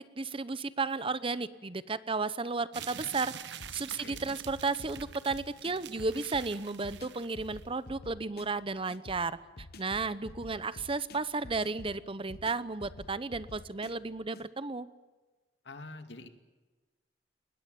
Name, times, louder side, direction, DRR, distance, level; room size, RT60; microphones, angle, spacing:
voice 1, 0.0-3.3 3.7-9.4 9.8-14.9, right 3 dB, 30° right, 15 dB, 0.8 m, -33 dB
sound 1, 2.7-7.6, right 9 dB, 75° right, 0.9 m, -46 dB
sound 2, 3.6-14.5, left 2 dB, 60° left, 1.0 m, -50 dB
voice 2, 15.6-16.3, left 2 dB, 75° left, 7 dB, 2.5 m, -45 dB
21.0 x 20.5 x 9.0 m, 1.2 s
head